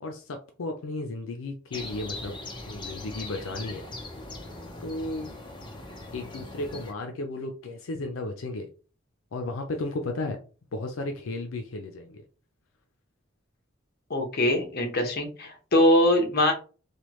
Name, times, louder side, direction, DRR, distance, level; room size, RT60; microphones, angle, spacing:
voice 1, 0.0-2.4 2.7-3.9 4.8-5.4 6.1-8.7 9.3-10.4 10.7-12.2, left 2 dB, 90° left, 0.5 m, -34 dB
sound 1, 1.7-6.9, left 2 dB, 25° left, 0.7 m, -40 dB
voice 2, 14.1-16.5, left 1 dB, 55° left, 0.9 m, -22 dB
3.2 x 2.2 x 3.0 m
head